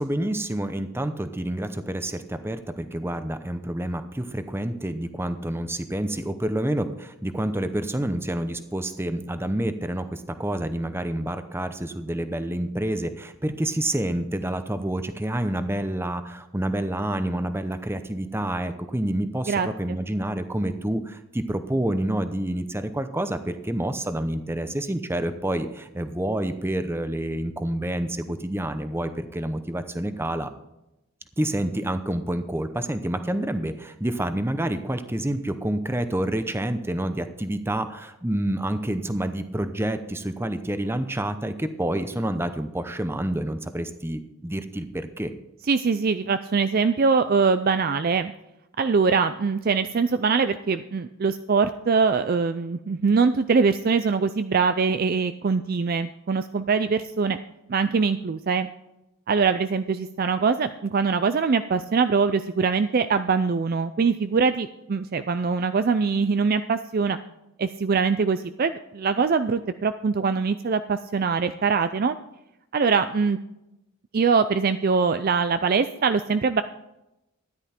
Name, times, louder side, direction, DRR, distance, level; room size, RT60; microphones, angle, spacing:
voice 1, 0.0-30.5 31.4-45.3, right 1 dB, 10° right, 10 dB, 0.7 m, -28 dB
voice 2, 19.5-20.0 45.7-48.3 48.8-57.4 57.7-58.7 59.3-67.2 67.6-72.1 72.7-73.4 74.1-76.6, right 5 dB, 45° right, 11 dB, 0.4 m, -23 dB
13.0 x 10.5 x 4.4 m, 0.90 s
head